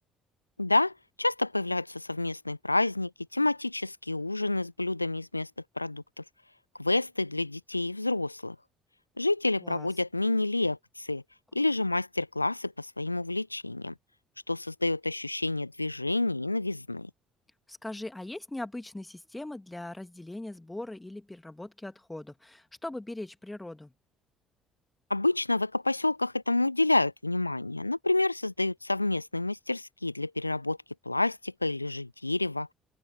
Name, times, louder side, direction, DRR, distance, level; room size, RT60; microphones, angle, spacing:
voice 1, 0.6-5.5 5.8-6.2 6.8-8.6 9.2-11.2 11.5-13.9 14.5-17.1 25.1-30.8 31.1-32.7, left 2 dB, 85° left, 0.7 m, -29 dB
voice 2, 17.7-23.9, left 1 dB, 10° left, 2.4 m, -40 dB
open air
figure-of-eight pair, 50°, 0 cm